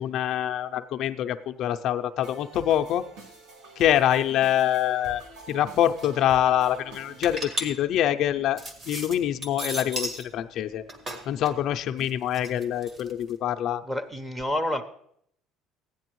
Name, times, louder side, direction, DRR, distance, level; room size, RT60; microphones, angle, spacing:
voice 1, 0.0-3.0 3.8-5.2 5.5-10.8 11.3-13.8, left 11 dB, 55° left, 8 dB, 0.4 m, -25 dB
sound 1, 2.2-7.4, right 2 dB, 85° right, 1.8 m, -46 dB
sound 2, 5.5-5.6 5.8-6.2 6.7-10.3 10.6-13.3, equal, 35° right, 1.6 m, -35 dB
voice 2, 13.9-14.8, left 1 dB, 10° right, 9 dB, 0.8 m, -28 dB
15.5 x 9.9 x 3.1 m, 0.69 s
cardioid pair, 145°, 0 cm